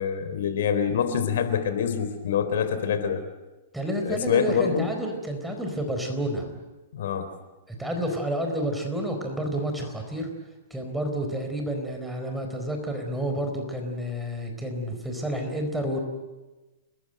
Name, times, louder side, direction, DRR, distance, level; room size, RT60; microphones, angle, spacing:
voice 1, 0.0-3.2 4.1-4.9 6.9-7.3, left 7 dB, 70° left, 10 dB, 3.8 m, -25 dB
voice 2, 3.7-6.6 7.7-10.3 10.7-16.0, right 1 dB, 5° right, 3 dB, 4.3 m, -30 dB
30.0 x 20.5 x 7.9 m, 1.1 s
hypercardioid pair, 155°, 0 cm